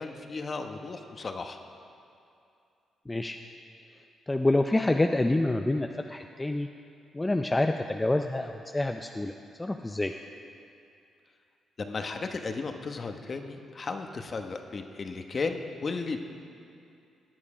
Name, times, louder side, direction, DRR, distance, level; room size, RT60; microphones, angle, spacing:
voice 1, 0.0-1.6 11.8-16.2, left 4 dB, 40° left, 5 dB, 1.1 m, -35 dB
voice 2, 3.1-3.4 4.3-6.7 7.1-9.3 9.6-10.1, left 2 dB, 15° left, 5 dB, 0.5 m, -27 dB
17.0 x 10.0 x 4.9 m, 2.5 s
cardioid pair, 90°, 0 cm